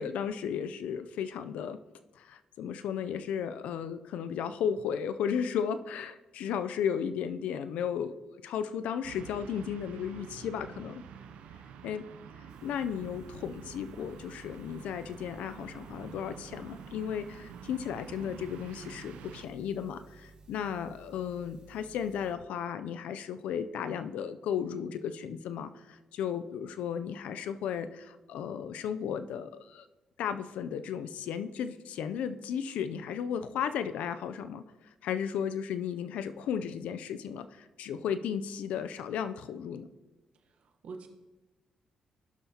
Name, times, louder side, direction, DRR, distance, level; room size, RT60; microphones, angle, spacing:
voice 1, 0.0-1.8 2.1-8.1 8.4-11.0 11.8-12.1 12.6-29.9 30.2-34.6 35.0-39.9, left 8 dB, 90° left, 11 dB, 0.4 m, -34 dB
sound 1, 9.0-19.4, right 7 dB, 90° right, 0.5 m, -48 dB
sound 2, 12.5-22.3, right 3 dB, 45° right, 1.9 m, -56 dB
voice 2, 40.4-41.1, right 4 dB, 70° right, 4 dB, 1.0 m, -46 dB
16.0 x 5.7 x 2.8 m, 1.1 s
cardioid pair, 85°, 2 cm